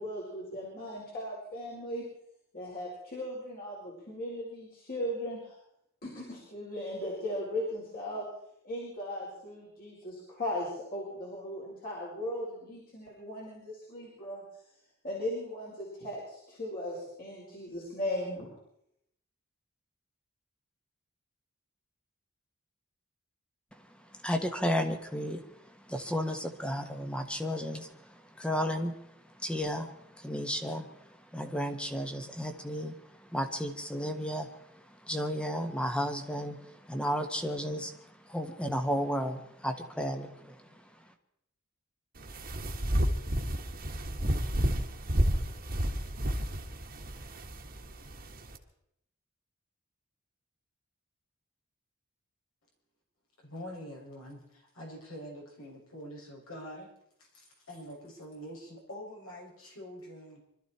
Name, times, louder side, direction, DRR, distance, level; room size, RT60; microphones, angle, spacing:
voice 1, 0.0-2.0 2.5-5.6 6.0-8.2 8.6-14.4 15.0-18.5, left 1 dB, 45° left, -5 dB, 4.8 m, -37 dB
voice 2, 23.7-29.0 29.2-40.8, equal, 5° left, 6 dB, 1.5 m, -34 dB
sound 1, 42.2-48.6, equal, 45° right, 1.7 m, -31 dB
voice 3, 53.4-56.9 57.2-60.4, equal, 70° left, -2 dB, 6.3 m, -45 dB
25.0 x 13.5 x 4.4 m, 0.77 s
head